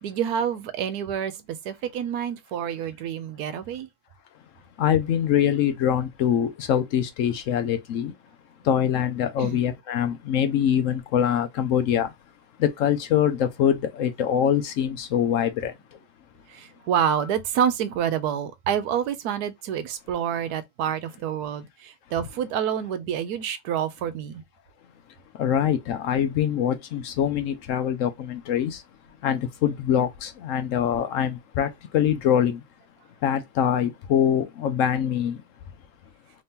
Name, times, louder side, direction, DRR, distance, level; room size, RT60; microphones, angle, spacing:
voice 1, 0.0-1.3 1.6-3.9 9.4-9.6 16.5-24.4, right 8 dB, 90° right, 1.2 m, -28 dB
voice 2, 4.8-8.1 8.7-12.1 12.6-15.7 17.2-17.3 25.4-28.8 29.2-32.6 33.2-35.4, left 9 dB, 65° left, 0.8 m, -24 dB
3.2 x 2.8 x 3.6 m
omnidirectional pair, 1.6 m